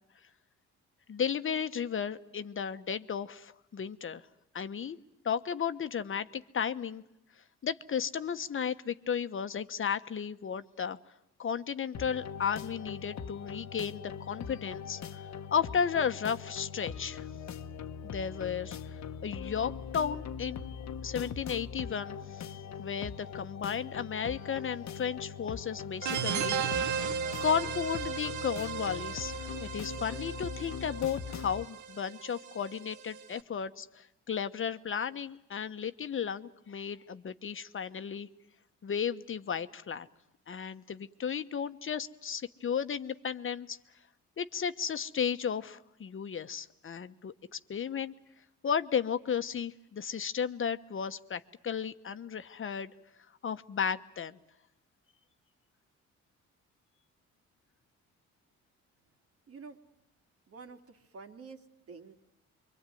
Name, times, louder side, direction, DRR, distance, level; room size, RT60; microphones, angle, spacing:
voice 1, 1.1-4.2 4.5-5.0 5.2-7.0 7.6-11.0 11.4-15.2 15.5-17.3 18.0-20.7 21.0-22.5 22.8-27.0 27.4-38.3 38.8-40.1 40.5-43.8 44.4-47.3 47.7-48.1 48.6-52.9 53.4-54.4, left 7 dB, 45° left, 10 dB, 1.2 m, -34 dB
sound 1, 11.9-31.6, left 7 dB, 65° left, 1.1 m, -41 dB
sound 2, 26.0-33.3, right 7 dB, 75° right, 1.2 m, -36 dB
voice 2, 59.5-59.8 60.5-62.1, right 4 dB, 50° right, 6 dB, 2.9 m, -49 dB
26.5 x 24.0 x 9.3 m, 0.81 s
cardioid pair, 90°, 30 cm